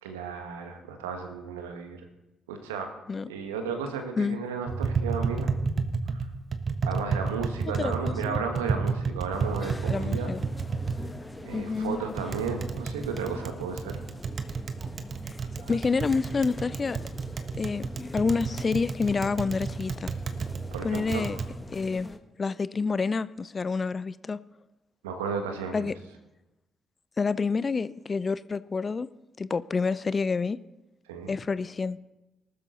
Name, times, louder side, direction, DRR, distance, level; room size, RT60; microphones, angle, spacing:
voice 1, 0.0-2.0 2.5-3.0 3.3-5.5 6.1-6.3 6.8-10.3 11.4-14.0 15.6-15.8 20.7-21.4 25.0-25.9 31.1-31.3, right 5 dB, 75° right, 5 dB, 1.7 m, -34 dB
Tap, 4.7-21.5, right 4 dB, 45° right, 1.3 m, -32 dB
voice 2, 7.8-8.4 9.9-10.4 11.5-12.0 15.2-15.4 15.7-17.0 17.6-17.9 18.1-20.1 20.8-21.4 21.7-22.1 22.4-24.4 25.7-25.9 27.2-29.1 29.4-30.6 31.3-32.0, left 4 dB, 35° left, 18 dB, 0.5 m, -28 dB
sound 1, 9.3-22.2, left 2 dB, 20° left, 1.4 m, -44 dB
19.5 x 12.5 x 4.0 m, 1.0 s
figure-of-eight pair, 40°, 0 cm